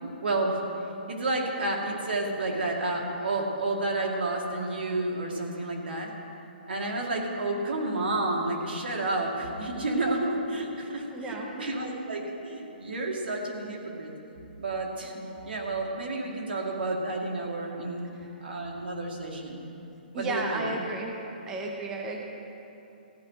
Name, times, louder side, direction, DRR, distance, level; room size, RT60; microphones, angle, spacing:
voice 1, 0.0-0.6 1.1-6.1 6.7-14.1 14.6-18.2 18.4-19.6 20.1-20.7, right 2 dB, 85° right, 0 dB, 2.3 m, -30 dB
voice 2, 11.1-11.7 18.2-18.3 20.1-21.2 21.5-22.2, right 2 dB, 10° right, 1 dB, 0.5 m, -33 dB
15.0 x 5.7 x 9.9 m, 2.9 s
hypercardioid pair, 180°, 5 cm